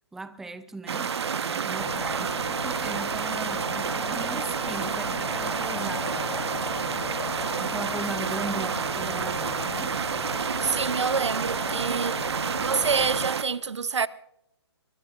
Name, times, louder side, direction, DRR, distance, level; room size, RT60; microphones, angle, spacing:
voice 1, 0.1-6.6 7.6-10.0, right 3 dB, 5° right, 0.5 m, -38 dB
sound 1, 0.9-13.4, right 6 dB, 70° right, 1.2 m, -29 dB
sound 2, 1.8-13.3, left 6 dB, 80° left, 0.6 m, -37 dB
voice 2, 10.6-12.2 12.6-14.1, right 5 dB, 90° right, 0.8 m, -27 dB
23.5 x 22.0 x 2.5 m
hypercardioid pair, 150°, 14 cm